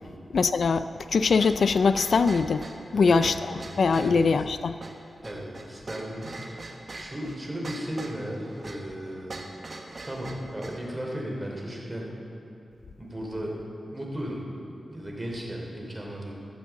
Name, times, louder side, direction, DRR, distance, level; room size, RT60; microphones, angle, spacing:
voice 1, 0.3-2.6 2.9-4.8, left 4 dB, 70° left, 12 dB, 0.3 m, -22 dB
sound 1, 1.4-10.9, right 2 dB, 45° right, 1.2 m, -42 dB
voice 2, 2.9-4.1 5.2-6.4 6.9-9.4 10.0-12.1 13.0-13.6 13.9-14.4 14.9-16.3, equal, 15° right, -2 dB, 3.1 m, -35 dB
13.5 x 7.5 x 7.0 m, 2.8 s
wide cardioid pair, 80°, 0 cm